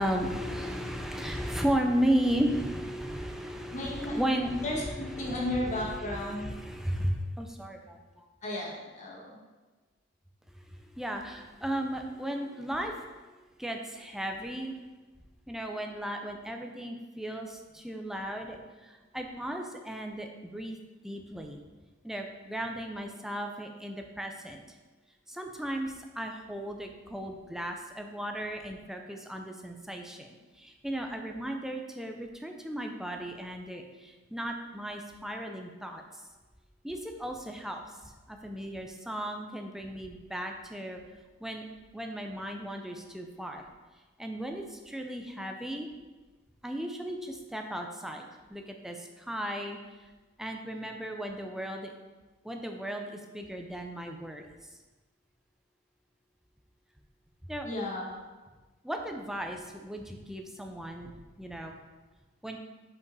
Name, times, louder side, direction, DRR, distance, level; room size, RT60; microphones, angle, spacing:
voice 1, 0.0-8.2 10.7-13.1 13.6-14.7 15.5-20.8 21.0-21.6 22.0-24.6 25.3-36.0 36.8-37.8 38.3-41.0 41.4-41.6 41.9-43.6 44.2-45.9 46.6-49.8 50.4-51.9 52.4-54.5 57.5-57.7 58.8-61.1 61.4-61.8 62.4-62.6, equal, ahead, 3 dB, 0.5 m, -35 dB
voice 2, 3.7-4.2 4.6-6.5 8.4-9.3 57.6-58.1, left 1 dB, 40° left, -3 dB, 1.4 m, -34 dB
5.3 x 5.0 x 4.0 m, 1.3 s
head